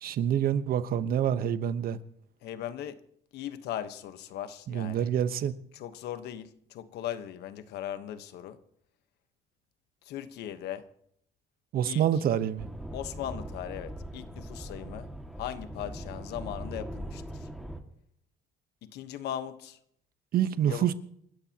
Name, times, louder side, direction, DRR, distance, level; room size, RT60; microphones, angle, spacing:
voice 1, 0.0-2.0 4.7-5.5 11.7-12.7 20.3-20.9, right 9 dB, 60° right, 1.1 m, -27 dB
voice 2, 2.4-3.0 3.3-5.1 5.7-8.6 10.0-10.9 11.9-12.0 12.9-15.1 15.4-17.5 18.8-19.8 20.7-20.9, left 11 dB, 80° left, 1.2 m, -38 dB
sound 1, 12.6-17.8, right 1 dB, ahead, 2.0 m, -41 dB
28.5 x 13.5 x 2.9 m
cardioid pair, 110°, 17 cm